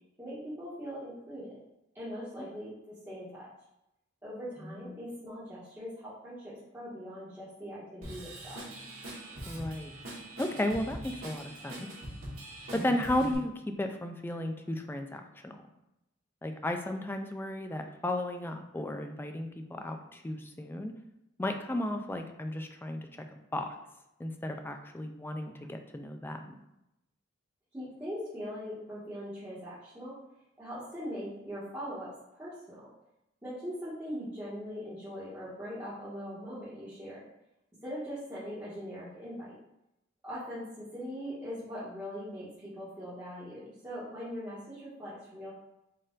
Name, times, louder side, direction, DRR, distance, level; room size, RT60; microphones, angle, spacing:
voice 1, 0.2-1.5 1.9-3.5 4.2-8.6 27.7-30.2 30.6-32.1 32.4-32.8 33.4-37.2 37.8-39.6 40.2-45.5, equal, 15° right, -13 dB, 1.2 m, -41 dB
voice 2, 4.7-5.0 9.5-9.9 10.4-11.9 12.7-13.5 13.8-15.6 16.4-20.9 21.4-23.7 24.2-26.5, left 1 dB, 10° left, 5 dB, 0.3 m, -34 dB
Drum kit / Drum, 8.0-13.3, right 1 dB, 80° right, 1.4 m, -42 dB
4.1 x 2.5 x 3.8 m, 0.87 s
head